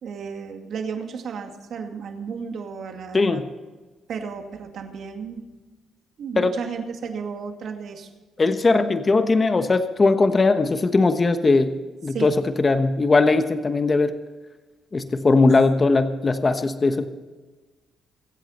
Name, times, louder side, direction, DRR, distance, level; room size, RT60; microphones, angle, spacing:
voice 1, 0.0-3.4 4.1-5.4 6.2-8.1 12.1-12.4, right 6 dB, 65° right, 4 dB, 2.3 m, -33 dB
voice 2, 3.1-3.5 6.4-6.6 8.4-11.7 12.0-14.1 14.9-17.1, left 3 dB, 30° left, 9 dB, 1.2 m, -19 dB
23.5 x 8.2 x 4.4 m, 1.3 s
cardioid pair, 90°, 0 cm